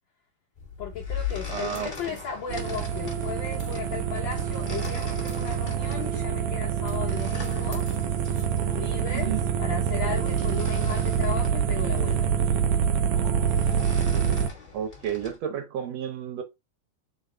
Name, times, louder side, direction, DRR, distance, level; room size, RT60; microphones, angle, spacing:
sound 1, 0.5-15.4, left 6 dB, 65° left, 0.4 m, -41 dB
voice 1, 0.8-7.9 8.7-12.3, left 6 dB, 85° left, 1.0 m, -36 dB
voice 2, 1.5-2.2 9.1-9.4 14.7-16.4, right 9 dB, 70° right, 1.9 m, -32 dB
sound 2, 2.5-14.5, right 8 dB, 90° right, 1.3 m, -26 dB
4.0 x 3.9 x 3.3 m
omnidirectional pair, 3.4 m